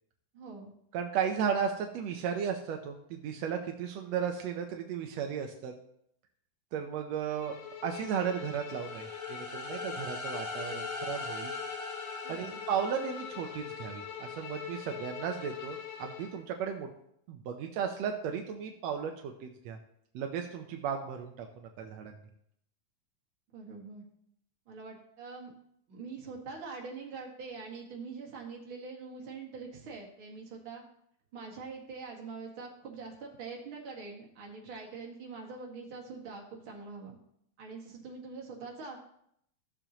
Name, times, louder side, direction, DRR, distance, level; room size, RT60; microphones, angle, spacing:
voice 1, 0.3-0.7 12.2-12.6 23.5-24.0 24.7-25.5 25.9-30.8 31.3-37.2 37.6-39.0, right 4 dB, 40° right, -2 dB, 2.3 m, -44 dB
voice 2, 0.9-5.7 6.7-11.5 12.3-16.9 17.3-19.8 20.1-22.1, right 7 dB, 80° right, 4 dB, 1.5 m, -35 dB
Bowed string instrument, 7.2-16.4, left 8 dB, 85° left, 3.0 m, -42 dB
sound 1, 8.8-13.6, left 2 dB, 15° left, 2.1 m, -42 dB
15.5 x 7.0 x 3.0 m, 0.72 s
omnidirectional pair, 4.0 m